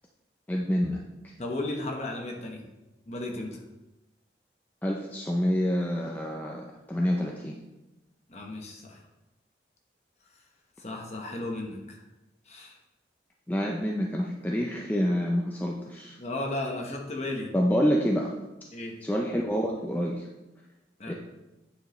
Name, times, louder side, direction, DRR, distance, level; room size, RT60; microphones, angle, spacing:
voice 1, 0.5-1.3 4.8-7.6 13.5-16.2 17.5-18.3 19.0-20.3 21.1-21.2, equal, 10° left, -1 dB, 0.4 m, -27 dB
voice 2, 1.4-2.6 3.1-3.6 8.3-9.0 10.8-12.0 12.5-12.8 16.2-17.5 18.7-19.0 21.0-21.1, left 2 dB, 35° left, 1 dB, 1.0 m, -35 dB
8.7 x 5.0 x 3.1 m, 1.0 s
head